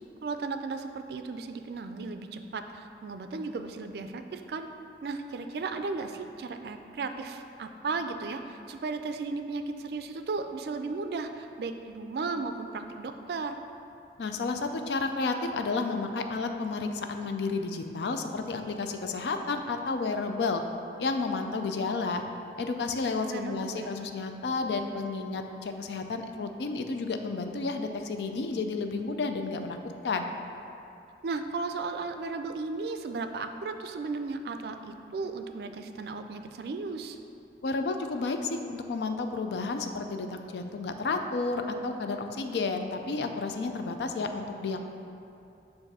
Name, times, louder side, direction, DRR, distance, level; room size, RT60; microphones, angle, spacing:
voice 1, 0.2-4.7 5.0-13.6 23.3-24.0 31.2-37.2, right 4 dB, 65° right, 7 dB, 0.3 m, -35 dB
voice 2, 14.2-20.6 21.0-22.2 22.6-29.8 30.0-30.3 37.6-44.8, left 3 dB, 75° left, 6 dB, 0.4 m, -31 dB
7.1 x 2.6 x 5.4 m, 2.7 s
head